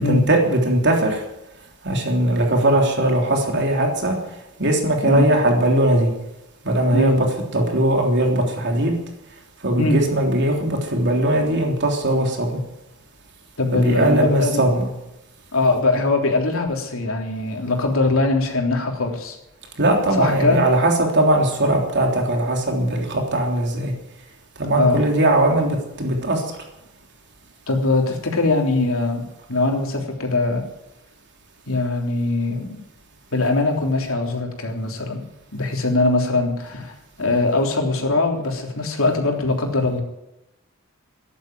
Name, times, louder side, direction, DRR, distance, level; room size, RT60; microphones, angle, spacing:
voice 1, 0.0-1.2 1.8-4.2 4.6-6.1 6.6-7.3 7.5-9.0 9.6-12.6 13.7-14.9 19.8-23.9 24.6-26.4, right 1 dB, 55° right, 1 dB, 3.4 m, -19 dB
voice 2, 13.6-14.5 15.5-19.4 20.1-20.6 24.7-25.0 27.7-30.6 31.7-32.8 33.3-35.2 35.5-40.0, left 2 dB, 75° left, 2 dB, 3.4 m, -21 dB
14.0 x 11.0 x 9.4 m, 0.90 s
head